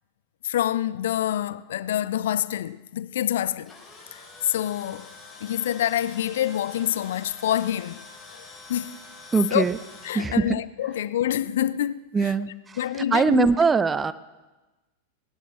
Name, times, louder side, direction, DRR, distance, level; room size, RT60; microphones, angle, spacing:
voice 1, 0.4-3.7 4.1-5.1 5.4-8.0 8.7-9.0 9.5-9.6 10.0-12.1 12.8-13.5, left 11 dB, 60° left, 0.4 m, -26 dB
Tools, 3.4-10.2, left 3 dB, 15° left, 4.9 m, -46 dB
voice 2, 9.3-9.8 10.1-10.6 12.1-14.1, right 4 dB, 15° right, 0.6 m, -22 dB
19.5 x 18.5 x 3.2 m
figure-of-eight pair, 90°, 0 cm